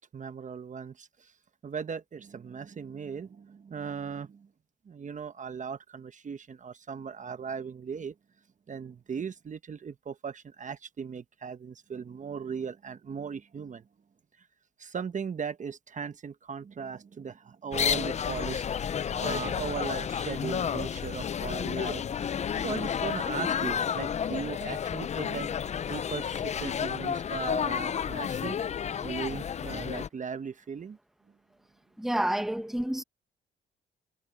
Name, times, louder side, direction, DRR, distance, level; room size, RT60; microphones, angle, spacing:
voice 1, 0.0-1.3 1.6-4.5 4.8-8.1 8.7-13.9 14.4-14.5 14.8-25.5 25.9-28.6 29.0-31.0, right 6 dB, 40° right, 1.1 m, -38 dB
sound 1, 17.7-30.1, left 8 dB, 35° left, 0.4 m, -31 dB
voice 2, 32.0-33.0, right 1 dB, ahead, 1.1 m, -29 dB
cardioid pair, 90°, 20 cm